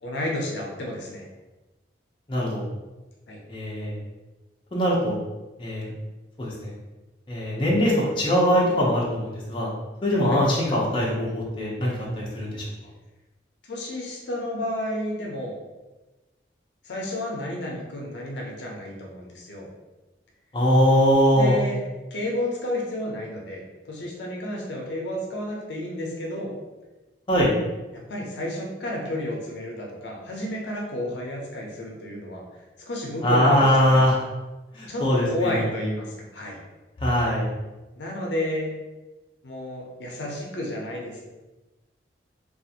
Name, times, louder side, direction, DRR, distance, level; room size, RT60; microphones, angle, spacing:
voice 1, 0.0-1.3 3.3-3.4 10.3-10.4 13.7-15.5 16.8-19.7 21.3-21.8 22.1-23.6 23.9-26.5 27.9-34.1 34.9-36.6 38.0-38.7 39.4-41.2, left 1 dB, 70° left, -1 dB, 0.6 m, -31 dB
voice 2, 2.3-2.6 3.5-4.0 4.7-5.2 5.6-5.9 6.4-6.7 7.3-9.7 10.0-12.6 20.5-21.6 27.3-27.5 33.2-34.2 34.7-35.7 37.0-37.5, equal, 30° left, -5 dB, 0.5 m, -22 dB
2.4 x 2.4 x 2.7 m, 1.1 s
head